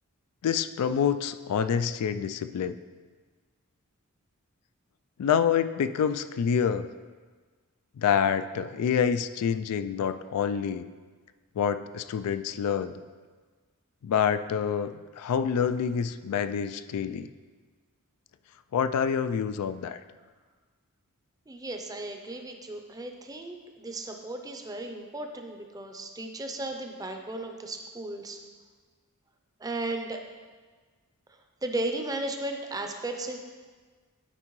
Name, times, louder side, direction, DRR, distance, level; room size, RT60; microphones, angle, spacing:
voice 1, 0.4-2.8 5.2-6.9 8.0-10.8 11.6-13.0 14.0-17.3 18.7-20.0, left 7 dB, 90° left, 11 dB, 0.3 m, -27 dB
voice 2, 21.5-28.4 29.6-30.2 31.6-33.4, right 2 dB, 15° right, 4 dB, 0.5 m, -35 dB
12.0 x 4.4 x 3.1 m, 1.5 s
head